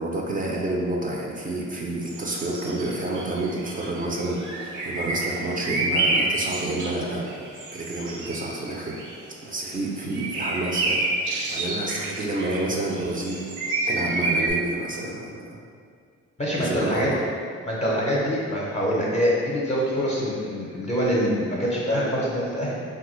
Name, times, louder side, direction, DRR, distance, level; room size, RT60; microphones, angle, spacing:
voice 1, 0.0-7.3 7.7-9.0 9.4-11.0 11.5-13.5 13.9-15.6 16.6-17.2, right 2 dB, 30° right, -2 dB, 0.4 m, -29 dB
sound 1, 2.0-9.2 10.0-14.5, right 2 dB, 75° right, 0.6 m, -29 dB
voice 2, 16.4-17.1 17.6-22.7, equal, 20° left, -6 dB, 0.6 m, -25 dB
3.1 x 2.2 x 3.0 m, 2.1 s
cardioid pair, 90°, 30 cm